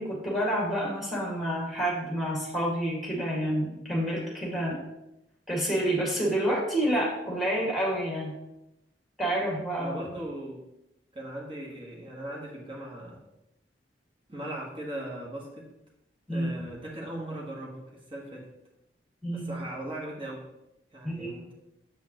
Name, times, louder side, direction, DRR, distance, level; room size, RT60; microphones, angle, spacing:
voice 1, 0.0-4.8 5.5-8.3 9.2-9.9 16.3-16.5 19.2-19.5 21.0-21.3, right 1 dB, ahead, -4 dB, 2.0 m, -28 dB
voice 2, 9.8-10.7 11.1-13.2 14.3-15.7 16.3-18.5 19.3-20.5 20.9-21.5, right 1 dB, 30° right, -3 dB, 1.5 m, -39 dB
7.6 x 5.6 x 3.0 m, 0.88 s
head